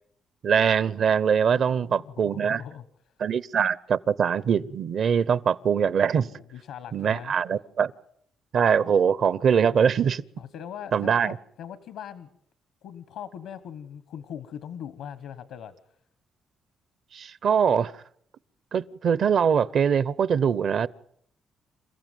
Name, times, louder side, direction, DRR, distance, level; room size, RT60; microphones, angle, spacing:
voice 1, 0.4-2.6 3.2-6.3 6.9-7.9 8.5-10.2 10.9-11.4 17.1-17.9 18.7-20.9, right 7 dB, 60° right, 19 dB, 0.9 m, -23 dB
voice 2, 1.5-2.8 6.2-7.4 10.4-12.3 12.8-15.7, left 9 dB, 85° left, 14 dB, 1.4 m, -41 dB
28.0 x 15.0 x 9.3 m, 0.71 s
cardioid pair, 90°, 0 cm